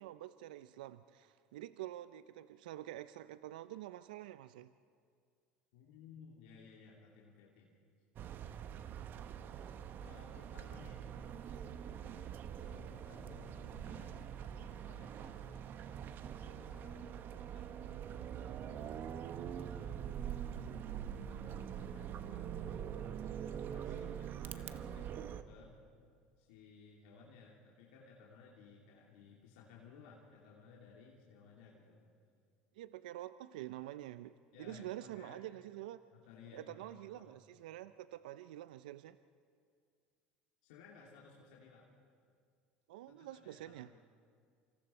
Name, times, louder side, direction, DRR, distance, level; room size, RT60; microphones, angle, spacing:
voice 1, 0.0-4.7 32.7-36.0 36.5-39.2 42.9-43.9, right 14 dB, 80° right, 14 dB, 0.5 m, -47 dB
voice 2, 5.7-7.7 10.0-11.1 12.1-12.4 12.6-16.0 16.4-19.1 19.4-20.7 21.1-22.4 23.2-25.8 26.4-32.1 34.5-35.4 36.1-37.4 40.6-41.9 43.1-44.0, left 5 dB, 75° left, -2 dB, 2.6 m, -59 dB
sound 1, 8.2-25.4, right 9 dB, 50° right, 1.1 m, -44 dB
27.5 x 26.0 x 4.4 m, 2.2 s
hypercardioid pair, 85°, 4 cm